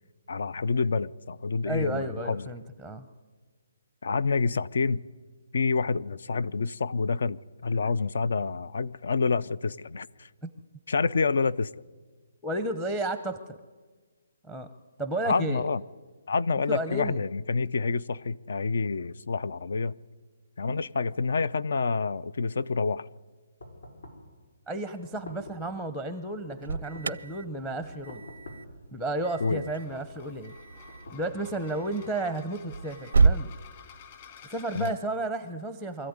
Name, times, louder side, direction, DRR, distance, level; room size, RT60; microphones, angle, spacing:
voice 1, 0.3-2.5 4.0-5.0 5.5-10.3 10.9-11.7 15.3-15.8 16.3-19.9 20.6-23.1 29.4-29.7 34.7-34.9, left 4 dB, 65° left, 20 dB, 0.6 m, -28 dB
voice 2, 1.7-3.1 10.4-10.5 12.4-13.6 14.4-14.7 15.0-15.6 16.7-17.2 20.7-20.8 24.7-28.2 28.9-30.5 31.1-33.5 34.5-36.1, right 2 dB, 5° left, 9 dB, 0.7 m, -32 dB
sound 1, 23.6-24.3 25.0-25.7 26.5-27.3 28.1-28.8 29.5-30.1 30.9-31.8, left 2 dB, 80° left, 5.0 m, -47 dB
Alarm, 26.3-33.5, right 4 dB, 90° right, 0.6 m, -30 dB
sound 2, 29.6-34.9, left 7 dB, 35° left, 2.1 m, -51 dB
24.5 x 14.0 x 9.6 m, 1.4 s
hypercardioid pair, 170°, 0 cm